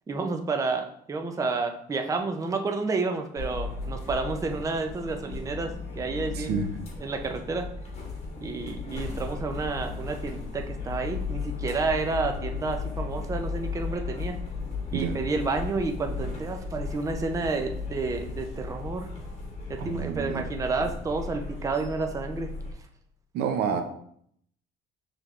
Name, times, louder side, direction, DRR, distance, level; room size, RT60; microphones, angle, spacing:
voice 1, 0.1-6.7 7.0-7.7 8.4-14.4 14.9-19.1 19.7-22.5, right 3 dB, 20° right, 5 dB, 0.5 m, -30 dB
sound 1, 3.4-22.7, left 4 dB, 40° left, 1.5 m, -35 dB
voice 2, 6.3-6.7 14.9-15.2 19.8-20.4 23.3-23.8, right 6 dB, 75° right, 7 dB, 0.6 m, -28 dB
5.8 x 3.4 x 2.4 m, 0.67 s
cardioid pair, 110°, 17 cm